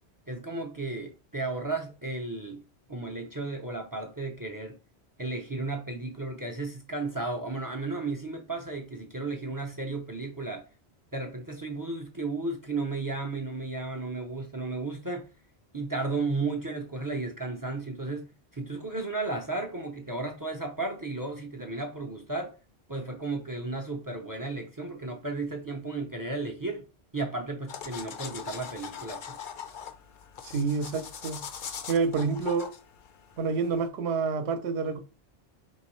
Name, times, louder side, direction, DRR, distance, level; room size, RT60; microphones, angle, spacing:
voice 1, 0.3-2.6 2.9-4.8 5.2-10.6 11.1-15.3 15.7-22.5 22.9-26.9 27.1-29.4, right 3 dB, 30° right, 0.3 m, -34 dB
sound 1, 27.7-33.9, left 7 dB, 60° left, 0.7 m, -42 dB
voice 2, 30.4-31.4 31.9-32.7 33.4-35.0, right 5 dB, 75° right, 0.9 m, -28 dB
4.6 x 3.0 x 3.0 m
omnidirectional pair, 1.1 m